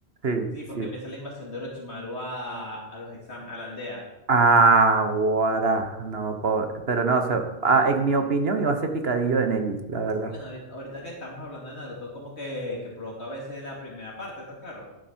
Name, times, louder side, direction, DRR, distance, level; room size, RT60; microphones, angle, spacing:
voice 1, 0.5-4.0 10.2-14.9, left 1 dB, 60° left, -2 dB, 2.8 m, -37 dB
voice 2, 4.3-10.3, right 4 dB, 55° right, 6 dB, 1.4 m, -22 dB
13.0 x 11.5 x 4.5 m, 0.98 s
omnidirectional pair, 1.3 m